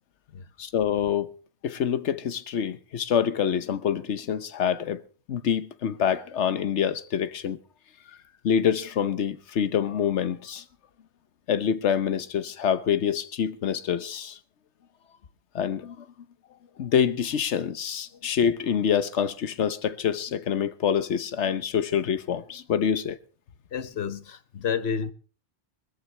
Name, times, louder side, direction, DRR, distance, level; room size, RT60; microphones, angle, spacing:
voice 1, 0.6-1.3 1.6-5.0 5.3-7.6 8.4-10.6 11.5-14.4 15.5-16.1 16.8-23.2, left 8 dB, 90° left, 1.2 m, -26 dB
voice 2, 23.7-25.1, left 7 dB, 70° left, 1.1 m, -30 dB
21.0 x 14.0 x 3.3 m
omnidirectional pair, 1.1 m